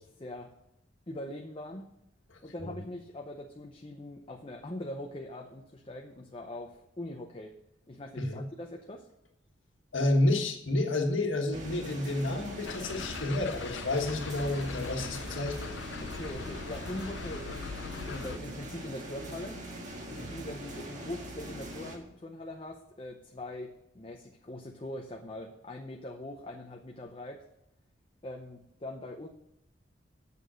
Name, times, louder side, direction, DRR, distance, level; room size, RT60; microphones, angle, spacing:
voice 1, 1.1-1.9 2.4-7.5 7.9-9.1 16.0-17.7 18.1-19.6 20.1-27.4 28.2-29.3, left 1 dB, 30° left, 3 dB, 0.7 m, -42 dB
voice 2, 2.3-2.8 8.2-8.4 9.9-15.7 20.1-20.4, left 2 dB, 85° left, 3 dB, 1.5 m, -30 dB
sound 1, 11.5-22.0, right 1 dB, 40° right, 1.6 m, -42 dB
sound 2, 12.7-18.4, left 5 dB, 70° left, 0.5 m, -41 dB
8.9 x 6.8 x 6.3 m, 0.79 s
head